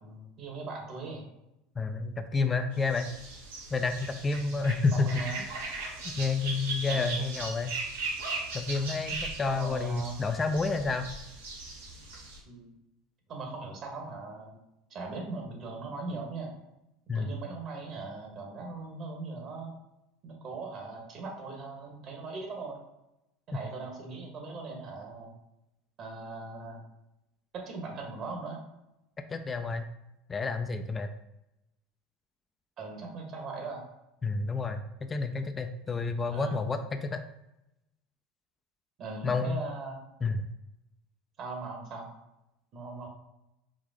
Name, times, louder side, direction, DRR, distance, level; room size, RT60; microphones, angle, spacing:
voice 1, 0.0-1.2 4.7-4.8 5.0-5.4 6.9-7.3 9.5-10.2 12.4-12.7 13.3-14.6 14.9-16.5 17.1-19.7 20.2-22.8 23.5-25.3 26.0-26.8 27.6-28.6 32.8-33.8 36.3-36.6 39.0-40.0 41.4-42.1 42.7-43.1, right 3 dB, 50° right, 1 dB, 1.4 m, -39 dB
voice 2, 1.8-3.1 3.7-5.5 6.2-7.8 8.5-11.1 17.1-17.3 29.2-29.9 30.3-31.1 34.2-34.8 35.1-37.2 39.2-39.6 40.2-40.4, left 4 dB, 25° left, 7 dB, 0.4 m, -30 dB
sound 1, 2.9-12.4, right 3 dB, 85° right, 1.0 m, -38 dB
4.9 x 2.6 x 3.7 m, 0.90 s
hypercardioid pair, 85°, 0 cm